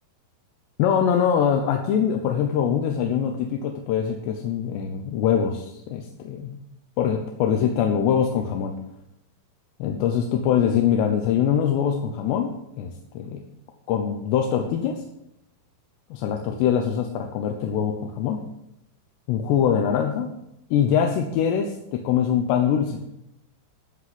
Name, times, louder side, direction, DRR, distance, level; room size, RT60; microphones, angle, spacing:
voice 1, 0.8-6.6 7.0-8.7 9.8-13.4 13.9-15.0 16.1-18.4 19.3-20.3 20.7-23.0, left 8 dB, 90° left, 3 dB, 3.1 m, -23 dB
13.5 x 6.0 x 7.8 m, 0.82 s
omnidirectional pair, 4.8 m